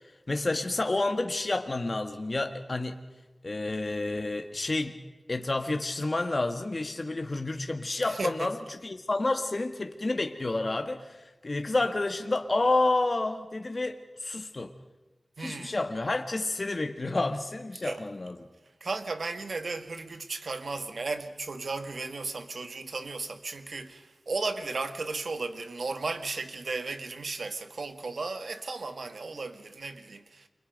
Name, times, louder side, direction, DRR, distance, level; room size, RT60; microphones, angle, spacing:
voice 1, 0.3-3.0 3.4-5.0 5.3-14.7 15.4-18.5, left 2 dB, 45° left, 1.5 m, -29 dB
voice 2, 8.1-8.5 15.4-15.7 17.8-18.0 18.8-30.5, right 3 dB, 80° right, 1.7 m, -35 dB
29.5 x 25.0 x 5.3 m
wide cardioid pair, 60°, 0 cm